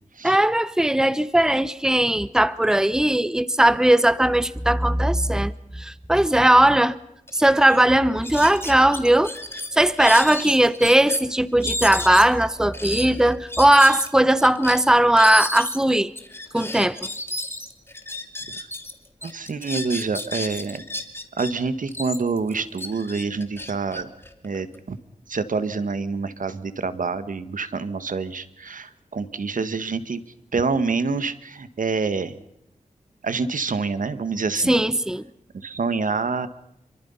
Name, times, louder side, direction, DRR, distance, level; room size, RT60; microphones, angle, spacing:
voice 1, 0.2-5.5 5.8-7.0 7.3-9.3 9.7-16.1 16.5-17.0 34.7-35.3, right 1 dB, 5° right, 0.9 m, -18 dB
sound 1, 7.3-7.4 7.7-7.8 8.2-11.2 11.6-18.9 19.2-21.5 21.9-24.8, left 1 dB, 15° left, 2.7 m, -32 dB
voice 2, 19.2-20.8 21.4-24.1 24.4-25.0 25.3-30.2 30.5-32.3 33.2-34.8 35.5-36.5, right 4 dB, 75° right, 1.5 m, -27 dB
27.5 x 24.0 x 5.6 m
wide cardioid pair, 80°, 14 cm